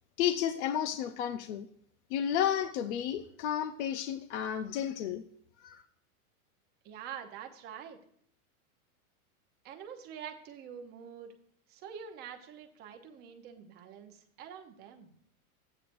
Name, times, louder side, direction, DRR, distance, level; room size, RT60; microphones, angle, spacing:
voice 1, 0.2-1.7 2.1-5.2 5.6-5.8, left 9 dB, 50° left, 9 dB, 0.6 m, -32 dB
voice 2, 6.8-8.0 9.6-11.3 11.7-15.1, right 8 dB, 20° right, 4 dB, 0.8 m, -46 dB
12.5 x 8.7 x 2.6 m, 0.63 s
supercardioid pair, 165°, 44 cm